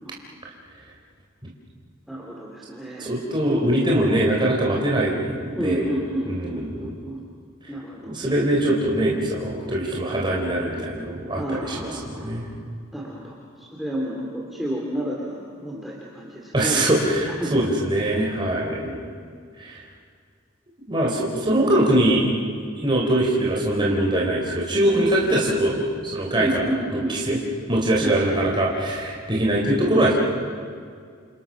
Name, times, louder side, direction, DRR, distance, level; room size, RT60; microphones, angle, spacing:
voice 1, 2.1-3.1 5.5-7.2 7.7-8.1 11.4-12.5 12.9-16.8 17.3-17.5 18.7-19.2 26.4-27.4 28.0-28.3, right 1 dB, ahead, -4 dB, 3.2 m, -31 dB
voice 2, 3.0-5.9 6.3-6.9 8.0-12.5 16.5-19.0 19.6-19.8 20.9-22.3 22.8-26.6 26.9-27.4 27.7-30.1, right 1 dB, 25° right, -3 dB, 3.7 m, -22 dB
29.0 x 29.0 x 6.4 m, 2.1 s
head